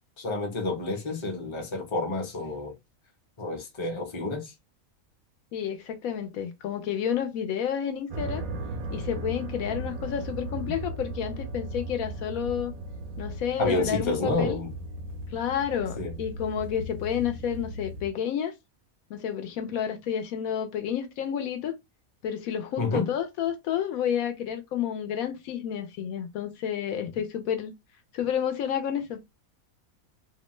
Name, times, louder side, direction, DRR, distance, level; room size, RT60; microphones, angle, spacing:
voice 1, 0.2-2.7 3.4-4.5 13.6-14.7 16.0-16.1 22.8-23.1, left 2 dB, 30° left, 0.6 m, -29 dB
voice 2, 5.5-8.4 8.9-12.7 13.2-14.6 15.3-18.5 19.1-21.7 22.2-27.7 28.1-29.2, left 9 dB, 80° left, 1.0 m, -30 dB
sound 1, 8.1-18.1, right 1 dB, 85° right, 1.1 m, -36 dB
2.8 x 2.1 x 3.0 m
omnidirectional pair, 1.5 m